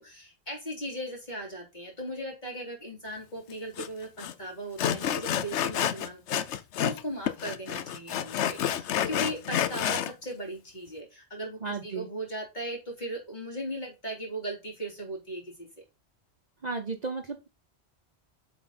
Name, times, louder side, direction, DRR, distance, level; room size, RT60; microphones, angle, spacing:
voice 1, 0.0-15.7, right 1 dB, 40° left, -1 dB, 3.5 m, -38 dB
Sawing, 3.8-3.9 4.2-4.3 4.8-7.0 7.3-10.1, left 10 dB, 90° left, 0.9 m, -29 dB
voice 2, 11.6-12.1 16.6-17.5, right 4 dB, 40° right, 5 dB, 0.9 m, -34 dB
7.6 x 4.3 x 4.3 m, 0.26 s
omnidirectional pair, 1.1 m